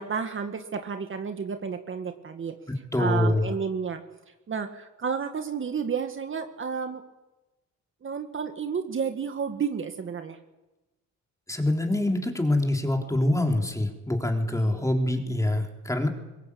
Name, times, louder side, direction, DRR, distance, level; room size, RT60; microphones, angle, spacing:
voice 1, 0.0-2.6 3.0-4.0 4.5-7.0 8.0-10.4 14.5-14.9, right 6 dB, 40° right, 6 dB, 1.8 m, -31 dB
voice 2, 2.9-3.4 11.5-16.1, left 1 dB, 10° left, 3 dB, 4.0 m, -25 dB
23.0 x 19.0 x 8.6 m, 1.1 s
cardioid pair, 90°, 30 cm